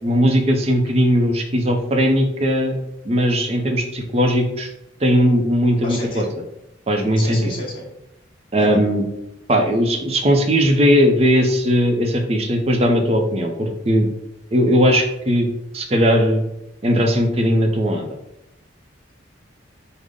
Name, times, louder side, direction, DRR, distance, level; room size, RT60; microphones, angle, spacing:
voice 1, 0.0-2.7 3.0-4.7 5.0-6.2 6.9-7.5 8.5-9.1 9.5-14.1 14.5-15.5 15.7-16.4 16.8-18.1, equal, 30° right, 4 dB, 0.5 m, -18 dB
voice 2, 5.8-6.3 7.2-7.9 8.6-8.8, left 1 dB, 25° left, -6 dB, 1.0 m, -32 dB
4.9 x 2.1 x 3.7 m, 0.85 s
head